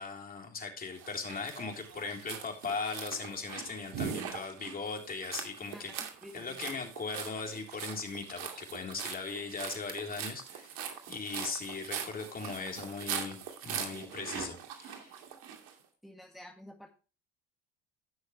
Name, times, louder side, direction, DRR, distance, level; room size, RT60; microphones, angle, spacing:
voice 1, 0.0-5.9 6.3-10.7 11.1-15.2, left 4 dB, 30° left, 2 dB, 3.6 m, -39 dB
sound 1, 1.0-15.7, right 8 dB, 70° right, 2.4 m, -42 dB
voice 2, 5.7-6.9 16.0-16.9, left 1 dB, ahead, 1 dB, 2.0 m, -51 dB
16.5 x 6.4 x 3.2 m, 0.34 s
hypercardioid pair, 80°, 30 cm